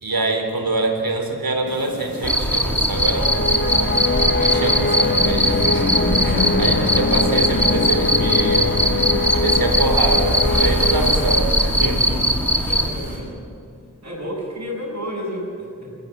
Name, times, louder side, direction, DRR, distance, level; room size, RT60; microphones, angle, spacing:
voice 1, 0.0-5.9 6.2-9.0 9.3-12.4, right 2 dB, 90° right, 3 dB, 3.6 m, -25 dB
sound 1, 1.7-13.2, equal, 80° left, 7.1 m, -33 dB
Cricket, 2.2-12.9, equal, 5° left, 2.8 m, -20 dB
sound 2, 3.1-11.5, left 3 dB, 30° left, 1.5 m, -23 dB
voice 2, 4.3-4.8 12.6-13.3 14.0-16.0, equal, 45° right, -9 dB, 6.7 m, -32 dB
29.5 x 13.5 x 7.8 m, 2.4 s
wide cardioid pair, 60°, 34 cm